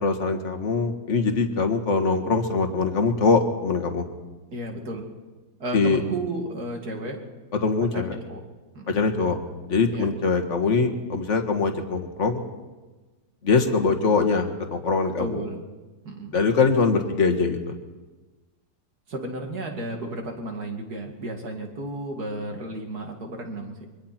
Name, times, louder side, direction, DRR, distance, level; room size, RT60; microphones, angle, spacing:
voice 1, 0.0-4.1 5.7-6.0 7.6-8.2 8.9-9.4 9.7-12.4 13.4-15.3 16.3-17.7, left 4 dB, 40° left, 5 dB, 2.0 m, -22 dB
voice 2, 4.5-5.1 5.6-7.2 7.8-8.4 8.7-8.9 9.9-10.1 15.2-15.6 16.0-16.4 19.1-23.9, right 1 dB, 55° right, 2 dB, 3.1 m, -33 dB
28.0 x 24.0 x 4.4 m, 1.2 s
omnidirectional pair, 2.0 m